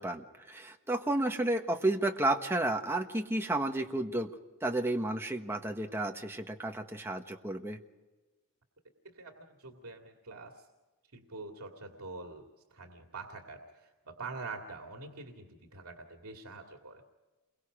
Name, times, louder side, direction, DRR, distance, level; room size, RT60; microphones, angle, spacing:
voice 1, 0.0-4.3 4.6-7.8, right 2 dB, 10° right, 3 dB, 1.4 m, -32 dB
voice 2, 9.0-10.7 11.1-17.0, right 3 dB, 85° right, 2 dB, 2.3 m, -45 dB
29.5 x 23.0 x 5.1 m, 1.2 s
head